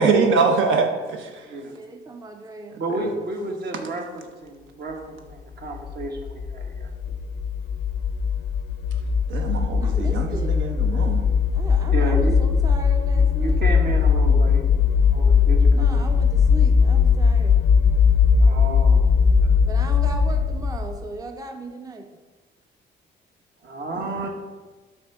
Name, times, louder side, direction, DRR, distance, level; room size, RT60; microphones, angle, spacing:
voice 1, 0.0-1.5 2.9-3.1 9.3-11.2 24.0-24.2, right 4 dB, 75° right, 4 dB, 0.8 m, -23 dB
voice 2, 1.7-2.8 9.8-10.6 11.5-14.5 15.7-17.6 17.9-18.0 19.7-22.1, right 2 dB, 20° right, 6 dB, 0.5 m, -37 dB
voice 3, 2.8-6.9 11.9-12.4 13.3-14.6 15.1-16.0 18.4-19.1 19.4-19.5 23.6-24.3, right 2 dB, 55° right, 2 dB, 1.2 m, -31 dB
sound 1, 5.7-21.0, left 6 dB, 75° left, 0.5 m, -19 dB
5.9 x 3.6 x 5.9 m, 1.3 s
cardioid pair, 90°, 20 cm